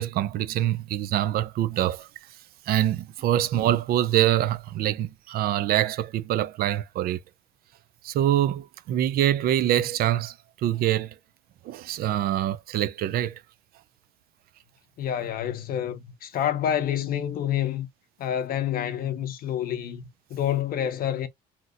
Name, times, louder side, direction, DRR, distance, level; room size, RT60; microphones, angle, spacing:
voice 1, 0.0-2.1 2.7-7.2 8.0-10.4 10.6-11.1 11.6-13.4, right 12 dB, 65° right, 0.4 m, -25 dB
voice 2, 15.0-17.9 18.2-21.3, left 10 dB, 60° left, 0.6 m, -28 dB
2.9 x 2.0 x 3.7 m
cardioid pair, 110°, 17 cm